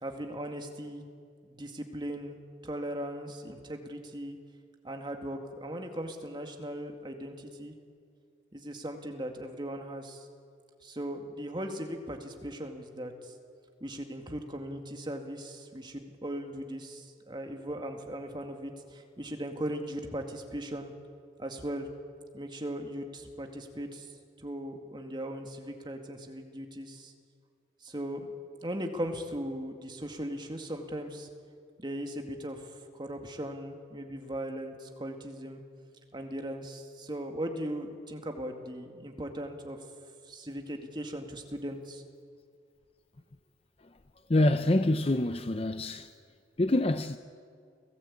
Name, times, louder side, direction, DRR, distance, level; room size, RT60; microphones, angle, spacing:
voice 1, 0.0-1.0 1.4-4.4 4.8-7.8 8.5-10.3 10.8-13.3 13.8-20.9 21.4-21.9 22.3-24.1 24.4-27.1 27.8-28.3 28.6-31.3 31.8-35.6 36.1-39.8 40.3-42.0, equal, 25° right, 2.2 m, -38 dB
voice 2, 44.3-46.1 46.6-47.2, left 1 dB, 35° left, 0.7 m, -26 dB
29.5 x 17.5 x 8.7 m
head